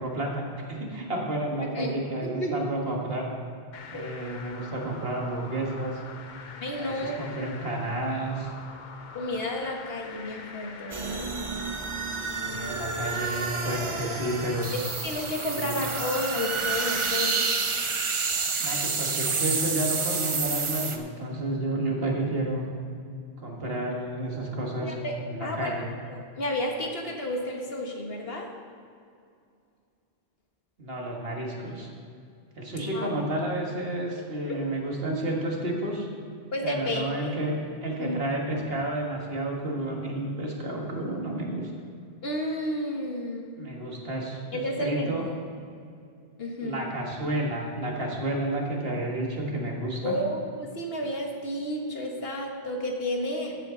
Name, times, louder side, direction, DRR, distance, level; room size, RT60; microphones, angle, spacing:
voice 1, 0.0-3.3 3.9-6.0 6.8-8.5 12.4-14.7 15.5-15.8 18.6-22.7 23.4-24.9 25.3-25.9 30.8-31.9 32.6-36.1 36.6-37.6 37.8-41.7 43.5-45.2 46.6-50.2, right 1 dB, 70° right, -1 dB, 2.0 m, -31 dB
voice 2, 2.2-2.5 3.9-4.2 6.6-7.1 9.1-11.4 14.7-17.5 24.8-25.1 25.4-25.8 26.0-28.5 32.8-33.1 34.5-34.6 36.5-37.3 38.0-38.2 42.2-43.5 44.5-45.3 46.4-46.9 50.0-53.6, left 1 dB, 70° left, 1 dB, 1.6 m, -32 dB
sound 1, 3.7-17.1, left 5 dB, 50° left, 0.8 m, -44 dB
sound 2, 10.9-21.0, right 4 dB, 35° right, 0.6 m, -29 dB
14.5 x 8.3 x 3.9 m, 2.4 s
omnidirectional pair, 1.0 m